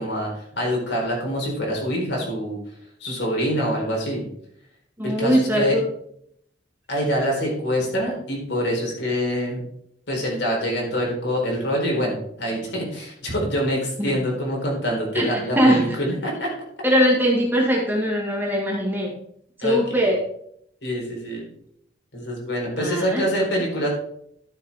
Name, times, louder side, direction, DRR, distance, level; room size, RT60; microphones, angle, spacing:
voice 1, 0.0-2.6 3.0-4.2 5.0-5.8 6.9-9.6 10.1-16.5 19.6-20.1 20.8-21.4 22.1-23.9, equal, 70° left, -2 dB, 4.1 m, -25 dB
voice 2, 5.0-5.8 14.0-14.1 15.1-16.0 16.8-19.2 19.6-20.2 22.8-23.2, equal, 10° right, -1 dB, 2.0 m, -21 dB
12.5 x 7.1 x 3.6 m, 0.70 s
head